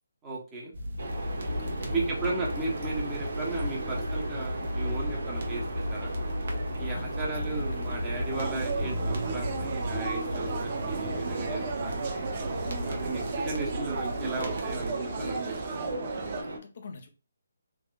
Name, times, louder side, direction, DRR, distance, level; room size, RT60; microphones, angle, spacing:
voice 1, 0.2-0.7 1.9-5.6 5.9-6.1 6.8-12.1 12.8-15.8, right 3 dB, 15° right, 0.9 m, -35 dB
sound 1, 0.7-14.9, left 1 dB, 55° right, 0.9 m, -35 dB
sound 2, 1.0-16.6, right 2 dB, 70° right, 1.3 m, -37 dB
voice 2, 1.3-2.1 6.8-7.9 16.4-17.1, left 4 dB, 45° left, 0.6 m, -47 dB
sound 3, 8.3-16.4, right 4 dB, 30° right, 0.6 m, -34 dB
3.5 x 2.9 x 2.4 m
hypercardioid pair, 165°, 0 cm